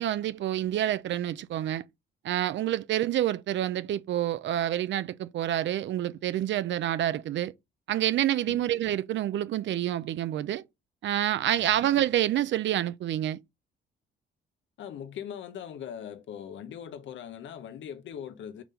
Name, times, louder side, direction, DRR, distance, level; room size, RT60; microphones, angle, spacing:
voice 1, 0.0-1.8 2.2-7.5 7.9-10.6 11.0-13.4, right 12 dB, 70° right, 0.6 m, -28 dB
voice 2, 14.8-18.6, left 9 dB, 70° left, 1.0 m, -40 dB
4.8 x 3.7 x 5.6 m
cardioid pair, 90°, 20 cm